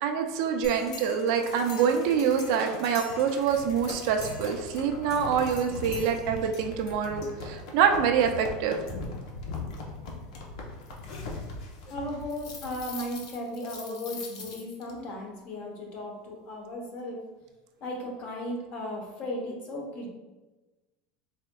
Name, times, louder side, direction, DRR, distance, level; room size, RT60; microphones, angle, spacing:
voice 1, 0.0-8.8, right 7 dB, 60° right, 5 dB, 0.4 m, -26 dB
sound 1, 0.6-14.9, left 3 dB, 80° left, 0.8 m, -40 dB
voice 2, 11.9-17.2 17.8-20.1, left 1 dB, 40° left, 0 dB, 0.9 m, -36 dB
4.3 x 3.4 x 2.3 m, 1.1 s
supercardioid pair, 160°, 3 cm